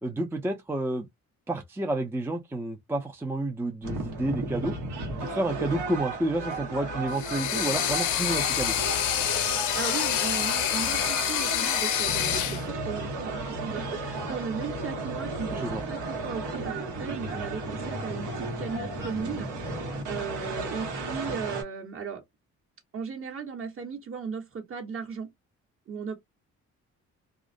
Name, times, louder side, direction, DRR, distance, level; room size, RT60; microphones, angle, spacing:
voice 1, 0.0-1.1 1.5-4.8 5.2-8.8 15.5-15.8, right 1 dB, 10° right, 0.4 m, -30 dB
sound 1, 3.8-21.6, right 2 dB, 80° right, 1.1 m, -34 dB
sound 2, 7.1-12.6, left 11 dB, 80° left, 0.5 m, -27 dB
voice 2, 9.7-19.5 19.8-22.2 22.9-25.3 25.9-26.1, right 5 dB, 45° right, 1.2 m, -36 dB
2.4 x 2.0 x 2.5 m
cardioid pair, 90°, 30 cm